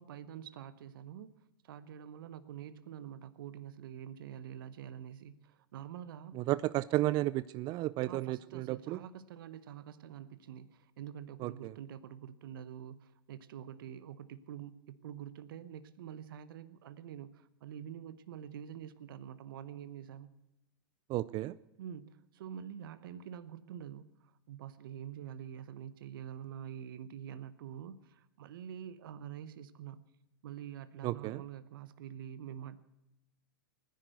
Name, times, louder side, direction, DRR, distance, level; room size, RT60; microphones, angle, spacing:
voice 1, 0.0-1.3 1.6-6.4 8.0-20.3 21.8-30.0 30.4-32.8, right 9 dB, 65° right, 14 dB, 1.0 m, -46 dB
voice 2, 6.3-9.0 11.4-11.7 21.1-21.6 31.0-31.4, right 17 dB, 35° right, 16 dB, 0.5 m, -33 dB
20.0 x 10.5 x 6.7 m, 0.92 s
hypercardioid pair, 110°, 12 cm